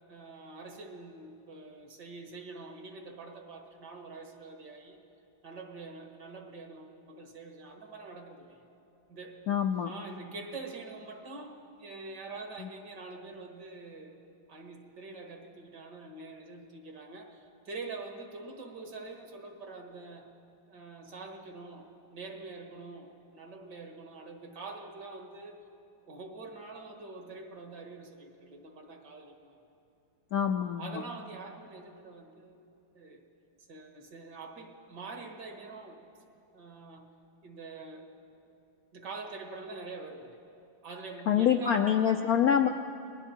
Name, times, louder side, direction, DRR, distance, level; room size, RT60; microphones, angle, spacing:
voice 1, 0.1-5.0 5.4-8.7 9.1-9.4 9.8-14.2 14.5-20.3 20.7-25.6 26.0-29.6 30.8-32.6 32.9-33.2 33.7-36.0 36.5-37.1 37.4-38.1 38.9-40.4 40.8-42.3, right 3 dB, 60° right, 3 dB, 2.4 m, -45 dB
voice 2, 9.5-9.9 30.3-31.0 41.3-42.7, left 8 dB, 65° left, 5 dB, 0.9 m, -25 dB
30.0 x 20.5 x 4.5 m, 2.6 s
omnidirectional pair, 2.1 m